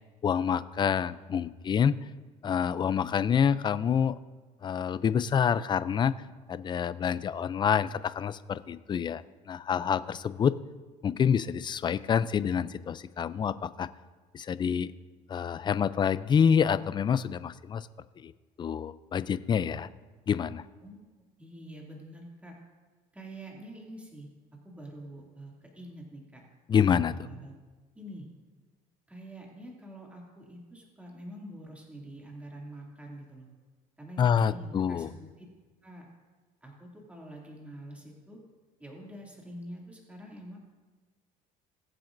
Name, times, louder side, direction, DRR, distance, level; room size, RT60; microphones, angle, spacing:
voice 1, 0.2-2.0 2.4-4.2 4.6-6.1 6.5-9.2 9.5-10.5 11.0-13.9 14.3-14.9 15.3-17.9 18.2-18.3 18.6-19.9 20.3-20.6 26.7-27.3 34.2-35.1, left 7 dB, 30° left, 15 dB, 0.4 m, -27 dB
voice 2, 21.4-22.6 23.1-24.3 24.6-26.4 27.0-27.5 27.9-28.3 29.1-33.5 34.0-35.3 35.8-36.1 36.6-38.4 38.8-40.6, right 1 dB, 10° right, -2 dB, 2.5 m, -46 dB
21.5 x 7.6 x 2.6 m, 1.4 s
cardioid pair, 110°, 15 cm